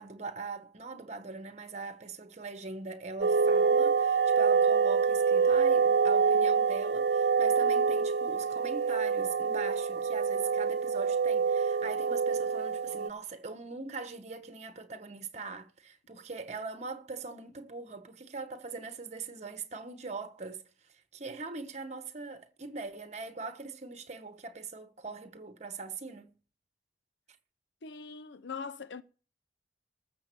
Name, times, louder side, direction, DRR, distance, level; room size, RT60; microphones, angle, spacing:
voice 1, 0.0-20.7 21.1-26.3, right 4 dB, 40° right, 1.2 m, -41 dB
sound 1, 3.2-13.1, right 5 dB, 60° right, 0.5 m, -26 dB
voice 2, 27.8-29.0, left 5 dB, 80° left, 0.6 m, -41 dB
13.5 x 7.1 x 6.9 m
head